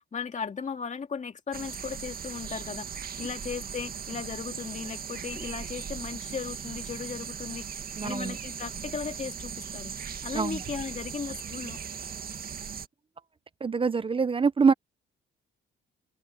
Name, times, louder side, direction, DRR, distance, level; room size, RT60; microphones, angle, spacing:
voice 1, 0.0-7.7 8.0-9.9 10.2-11.8, left 6 dB, 35° left, 2.6 m, -36 dB
sound 1, 1.5-12.9, right 7 dB, 50° right, 2.0 m, -38 dB
voice 2, 8.0-8.4 10.3-10.6 13.6-14.7, right 5 dB, 25° right, 0.7 m, -24 dB
open air
cardioid pair, 90°, 20 cm